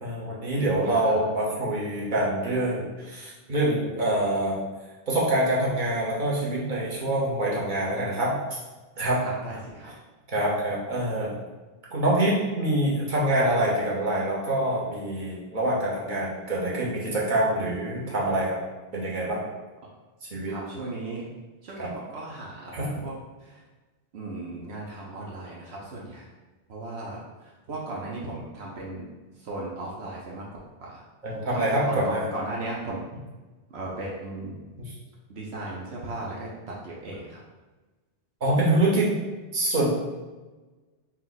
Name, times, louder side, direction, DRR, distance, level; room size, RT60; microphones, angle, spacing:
voice 1, 0.0-4.6 5.1-8.4 9.0-9.2 10.3-11.3 11.9-18.6 18.9-19.4 20.3-20.5 21.8-21.9 22.7-22.9 31.2-32.3 38.4-39.1 39.5-40.0, right 1 dB, 45° right, -5 dB, 1.1 m, -25 dB
voice 2, 0.6-1.2 9.2-9.9 20.5-21.3 21.6-23.1 23.4-23.6 24.1-26.2 26.7-29.1 29.4-30.4 30.8-31.0 31.5-33.0 33.7-34.6 35.3-37.4, right 2 dB, 70° right, -3 dB, 1.0 m, -36 dB
4.4 x 2.2 x 3.9 m, 1.2 s
omnidirectional pair, 1.2 m